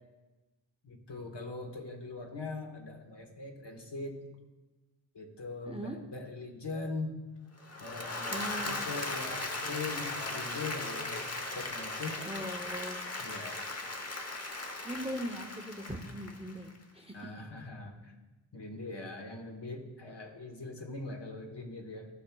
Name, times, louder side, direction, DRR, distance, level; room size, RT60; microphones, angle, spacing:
voice 1, 0.8-4.3 5.1-7.2 7.8-11.2 11.6-12.2 13.2-13.6 17.1-18.1 18.5-22.1, left 3 dB, 60° left, 3 dB, 1.3 m, -41 dB
voice 2, 5.6-6.0 8.3-8.8 12.2-13.0 14.8-17.2, equal, 15° right, 4 dB, 0.7 m, -40 dB
Applause / Crowd, 7.6-16.8, left 2 dB, 30° left, 0.9 m, -38 dB
15.5 x 5.9 x 2.3 m, 1.1 s
wide cardioid pair, 90°, 48 cm